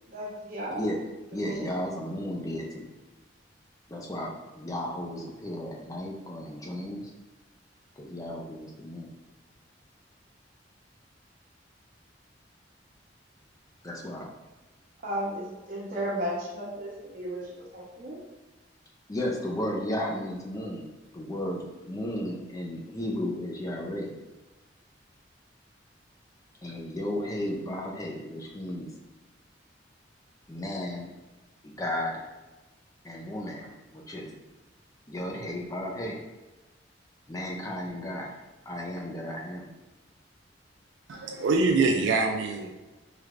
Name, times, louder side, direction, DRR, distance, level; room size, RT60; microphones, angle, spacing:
voice 1, 0.1-0.8 1.4-1.6 15.0-18.2, equal, 50° right, 1.0 m, -34 dB
voice 2, 1.3-2.9 3.9-7.0 8.0-9.1 13.8-14.3 19.1-24.1 26.6-28.9 30.5-31.1 31.6-32.2 33.0-34.3 35.1-36.2 37.3-38.3 38.7-39.7, left 1 dB, 20° left, 0.4 m, -34 dB
voice 3, 41.1-42.7, right 3 dB, 80° right, 0.4 m, -24 dB
3.3 x 3.2 x 2.4 m
head